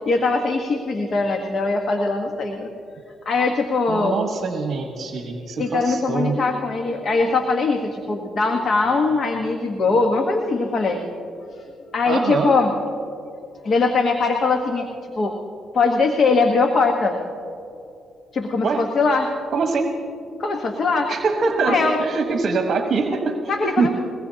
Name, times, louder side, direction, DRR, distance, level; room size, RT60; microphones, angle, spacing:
voice 1, 0.1-2.7 3.2-4.1 5.6-11.0 11.9-12.7 13.6-14.9 15.2-15.4 15.7-17.2 18.3-19.3 20.4-21.1 21.6-22.0 23.5-23.9, left 3 dB, 50° left, 3 dB, 1.3 m, -21 dB
voice 2, 3.9-6.4 12.1-12.5 18.6-18.8 19.5-19.9 21.1-23.9, right 4 dB, 50° right, 3 dB, 1.3 m, -23 dB
22.5 x 19.0 x 2.9 m, 2.7 s
cardioid pair, 90°, 0 cm